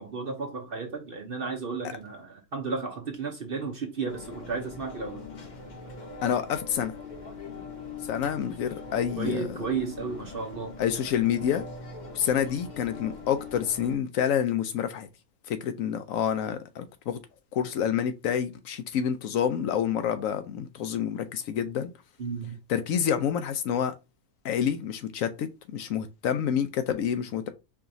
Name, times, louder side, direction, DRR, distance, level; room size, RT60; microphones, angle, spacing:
voice 1, 0.0-5.2 9.2-10.7 22.2-22.6, right 4 dB, 50° right, 0.7 m, -33 dB
sound 1, 4.1-14.0, left 3 dB, 45° left, 0.6 m, -42 dB
voice 2, 6.2-6.9 8.1-9.6 10.8-11.7 12.1-15.1 15.5-17.2 17.5-21.9 22.7-23.9 24.4-27.5, left 8 dB, 70° left, 0.9 m, -28 dB
4.7 x 2.9 x 2.6 m
omnidirectional pair, 1.5 m